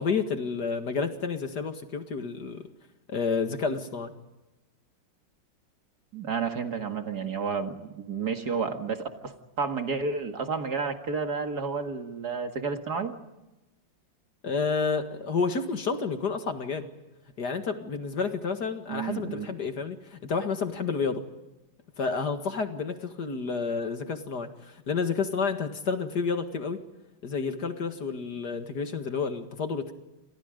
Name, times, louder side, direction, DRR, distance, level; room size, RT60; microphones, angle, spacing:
voice 1, 0.0-2.6 3.1-4.1 14.4-16.9 17.4-21.2 22.0-26.8 27.2-29.9, left 5 dB, 55° left, 7 dB, 2.4 m, -30 dB
voice 2, 6.1-13.1 18.9-19.5, right 5 dB, 50° right, 6 dB, 2.4 m, -31 dB
29.0 x 27.0 x 5.2 m, 1.0 s
omnidirectional pair, 2.2 m